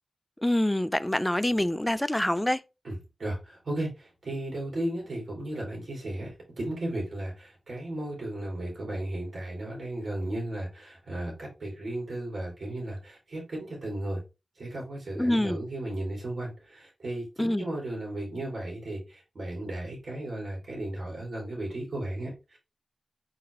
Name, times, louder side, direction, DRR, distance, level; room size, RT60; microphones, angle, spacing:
voice 1, 0.4-2.6 15.2-15.6 17.4-17.7, left 1 dB, 10° left, 0.3 m, -26 dB
voice 2, 2.8-14.2 14.6-22.6, right 1 dB, 60° right, 2.8 m, -35 dB
4.3 x 4.0 x 3.1 m
wide cardioid pair, 80°, 0 cm